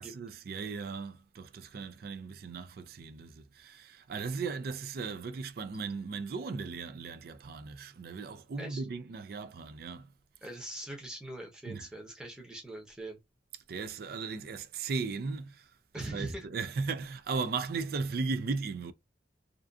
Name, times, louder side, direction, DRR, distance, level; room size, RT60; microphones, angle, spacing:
voice 1, 0.0-10.1 11.7-11.9 13.7-18.9, right 4 dB, 55° right, 0.3 m, -37 dB
voice 2, 10.4-13.2 15.9-16.5, right 1 dB, 5° right, 0.7 m, -42 dB
2.5 x 2.4 x 2.3 m
head